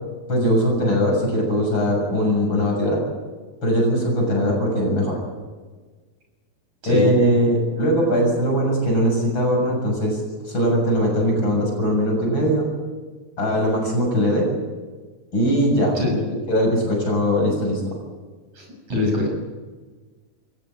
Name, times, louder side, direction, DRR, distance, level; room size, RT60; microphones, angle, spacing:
voice 1, 0.3-3.0 3.6-5.2 6.8-10.2 10.5-12.7 13.4-14.5 15.3-16.0 16.5-17.9, equal, 30° left, 0 dB, 7.4 m, -20 dB
voice 2, 18.6-19.3, left 3 dB, 50° right, -1 dB, 8.0 m, -23 dB
23.5 x 17.0 x 8.9 m, 1.4 s
omnidirectional pair, 4.2 m